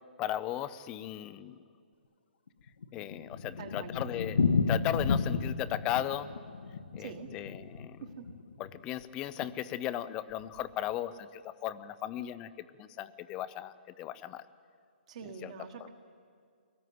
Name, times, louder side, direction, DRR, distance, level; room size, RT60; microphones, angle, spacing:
voice 1, 0.2-1.6 2.9-6.3 6.9-8.0 8.6-14.5 15.4-15.5, left 12 dB, 15° left, 15 dB, 0.5 m, -36 dB
Thunder, 2.5-8.8 9.0-9.1 9.4-9.5 9.7-9.8 10.4-10.7, left 5 dB, 80° left, 1.4 m, -32 dB
voice 2, 3.6-3.9 7.0-7.3 8.0-8.3 15.1-15.9, right 6 dB, 35° right, 3 dB, 1.5 m, -44 dB
24.0 x 19.0 x 9.4 m, 2.2 s
hypercardioid pair, 170°, 6 cm